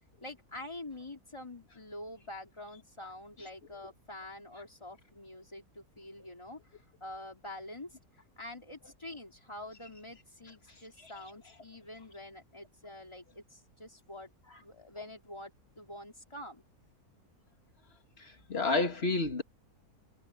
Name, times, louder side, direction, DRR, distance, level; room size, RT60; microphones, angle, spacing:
voice 1, 0.2-8.0 8.4-14.3 14.6-16.6, left 1 dB, 20° left, 2.8 m, -46 dB
voice 2, 18.2-19.4, left 3 dB, 40° left, 2.4 m, -30 dB
omnidirectional pair, 1.6 m